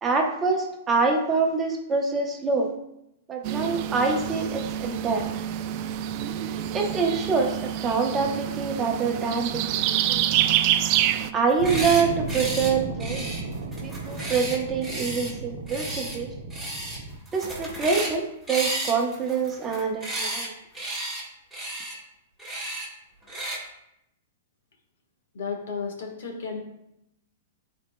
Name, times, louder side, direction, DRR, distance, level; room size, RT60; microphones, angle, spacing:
voice 1, 0.0-2.7 3.3-5.3 6.7-10.5 11.3-13.3 13.8-16.3 17.3-20.5, right 4 dB, 15° right, 1 dB, 0.8 m, -26 dB
sound 1, 3.4-11.3, right 11 dB, 40° right, 0.4 m, -27 dB
sound 2, 11.5-12.0 12.3-12.7 13.0-15.3 15.7-16.2 16.5-17.0 17.2-18.2 18.5-20.5 20.7-21.2 21.5-21.9 22.4-22.9 23.3-23.6, right 1 dB, ahead, 1.8 m, -33 dB
sound 3, 11.6-17.2, right 3 dB, 65° right, 0.8 m, -34 dB
voice 2, 25.3-26.6, left 5 dB, 70° left, 2 dB, 1.4 m, -33 dB
11.5 x 4.2 x 2.2 m, 0.84 s
hypercardioid pair, 155°, 0 cm